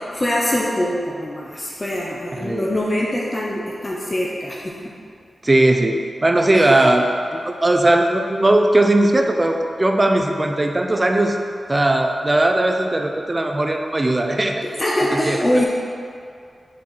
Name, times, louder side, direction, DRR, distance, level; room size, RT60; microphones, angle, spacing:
voice 1, 0.1-4.6 6.5-6.9 14.6-15.6, left 1 dB, 30° left, -4 dB, 0.8 m, -23 dB
voice 2, 2.3-2.7 5.4-7.0 7.3-11.4 11.7-14.6 15.2-15.4, right 1 dB, 30° right, 3 dB, 0.6 m, -18 dB
6.3 x 4.5 x 4.3 m, 2.3 s
cardioid pair, 65°, 0 cm